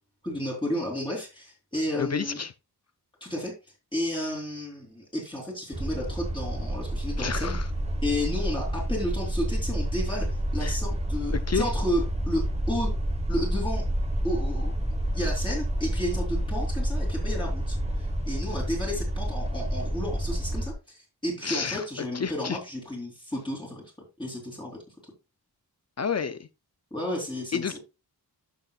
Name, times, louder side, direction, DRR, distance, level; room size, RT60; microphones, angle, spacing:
voice 1, 0.2-2.4 3.2-3.5 3.9-7.5 8.0-10.3 10.5-12.9 13.3-13.9 14.2-14.8 15.1-23.8 24.2-24.8 26.9-27.8, left 1 dB, 10° left, 3.0 m, -32 dB
voice 2, 2.0-2.5 7.2-7.7 10.6-10.8 11.3-11.7 21.4-22.6 26.0-26.5 27.5-27.8, left 6 dB, 40° left, 0.5 m, -30 dB
sound 1, 5.7-20.7, right 1 dB, 15° right, 1.0 m, -29 dB
11.5 x 6.7 x 2.3 m
wide cardioid pair, 170°, 40 cm